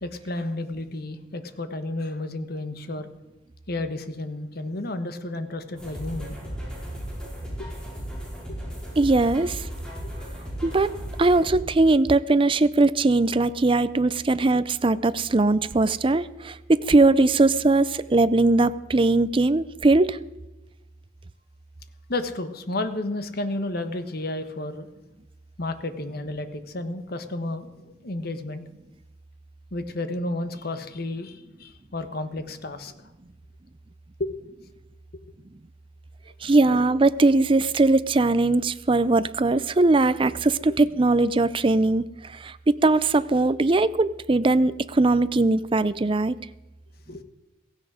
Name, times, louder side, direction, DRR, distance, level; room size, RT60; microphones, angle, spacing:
voice 1, 0.0-3.1 3.7-6.4 22.1-24.9 25.6-28.6 29.7-32.9 34.2-34.3 47.1-47.2, left 2 dB, 55° left, 9 dB, 1.3 m, -32 dB
sound 1, 5.8-11.6, equal, 5° left, 5.6 m, -36 dB
voice 2, 9.0-9.7 10.6-10.9 11.2-20.2 36.4-42.0 42.3-46.4, right 2 dB, 25° right, 14 dB, 0.5 m, -20 dB
16.0 x 15.5 x 5.0 m, 1.0 s
head